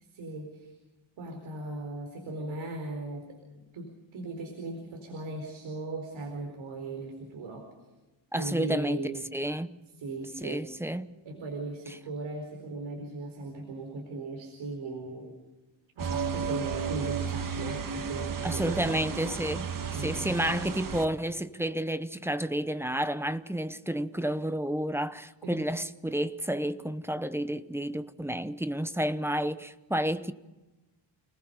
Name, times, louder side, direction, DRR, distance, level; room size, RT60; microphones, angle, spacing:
voice 1, 0.1-0.7 1.2-3.4 3.7-7.7 8.4-9.2 10.0-10.7 11.2-15.3 16.0-18.9 20.0-20.2 25.4-25.6, right 2 dB, 90° right, 4.6 m, -38 dB
voice 2, 8.3-9.8 10.4-11.2 11.9-12.0 18.4-19.7 20.0-30.3, right 1 dB, 5° right, 0.9 m, -31 dB
sound 1, 16.0-21.1, right 6 dB, 45° right, 1.7 m, -33 dB
30.0 x 20.0 x 5.5 m
wide cardioid pair, 125°, 45 cm